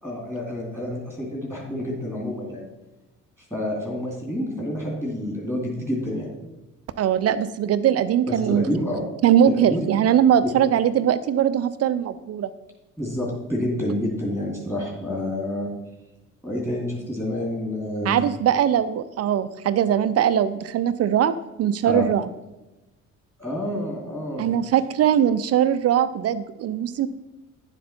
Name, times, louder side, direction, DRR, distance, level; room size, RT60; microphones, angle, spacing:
voice 1, 0.0-2.7 3.5-6.3 8.3-9.0 9.4-9.8 13.0-15.7 16.4-18.2 21.8-22.1 23.4-24.5, left 1 dB, 5° left, -2 dB, 2.6 m, -28 dB
voice 2, 7.0-8.7 9.2-12.5 18.1-21.3 21.6-22.3 24.4-27.1, right 9 dB, 35° right, 14 dB, 0.6 m, -21 dB
10.5 x 7.5 x 4.3 m, 1.0 s
figure-of-eight pair, 50°, 41 cm